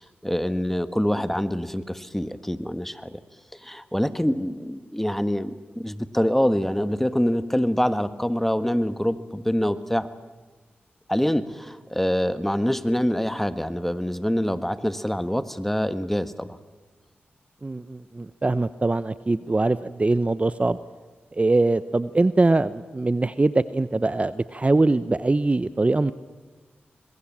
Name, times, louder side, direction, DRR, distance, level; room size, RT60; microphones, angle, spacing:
voice 1, 0.0-3.2 3.5-10.1 11.1-16.5, equal, 5° left, 12 dB, 1.5 m, -25 dB
voice 2, 17.6-20.8 21.3-26.1, right 2 dB, 30° right, 14 dB, 0.7 m, -22 dB
26.5 x 21.0 x 7.5 m, 1.3 s
cardioid pair, 45°, 4 cm